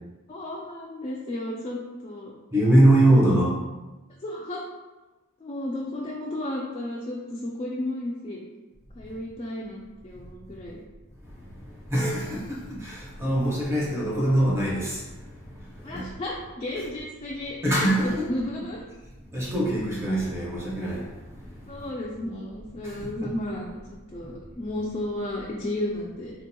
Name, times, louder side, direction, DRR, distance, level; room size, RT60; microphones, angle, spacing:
voice 1, 0.3-2.3 3.1-3.5 4.2-4.6 5.4-8.4 8.9-10.8 15.8-17.7 18.0-18.8 21.7-26.3, left 1 dB, 25° left, -4 dB, 0.3 m, -33 dB
voice 2, 2.5-3.5 11.2-16.1 17.6-18.3 19.3-21.8 22.8-23.3, right 1 dB, 10° right, -4 dB, 0.7 m, -24 dB
3.7 x 2.8 x 2.2 m, 1.1 s
head